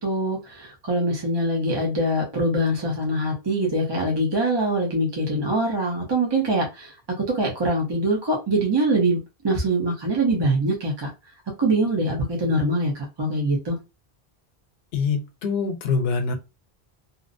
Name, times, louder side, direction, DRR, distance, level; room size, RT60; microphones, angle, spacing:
voice 1, 0.0-9.2 9.4-11.1 11.6-13.8, right 1 dB, 30° right, -1 dB, 0.6 m, -23 dB
voice 2, 14.9-16.4, left 5 dB, 80° left, 6 dB, 0.8 m, -24 dB
2.6 x 2.0 x 2.4 m, 0.25 s
omnidirectional pair, 1.0 m